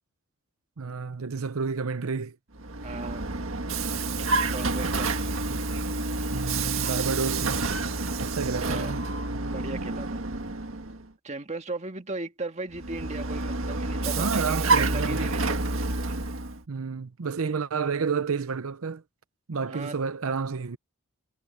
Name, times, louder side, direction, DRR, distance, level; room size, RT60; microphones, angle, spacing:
voice 1, 0.8-2.4 2.9-3.0 5.5-5.6 6.3-7.6 8.2-9.0 14.2-15.2 16.7-19.0 19.5-20.8, right 5 dB, 90° right, 0.7 m, -30 dB
Vehicle, 2.5-11.0 12.7-16.6, right 3 dB, 70° right, 1.8 m, -28 dB
voice 2, 2.8-3.2 4.5-5.6 8.6-8.9 9.5-10.2 11.2-15.6 19.7-20.0, right 2 dB, 35° right, 1.8 m, -37 dB
head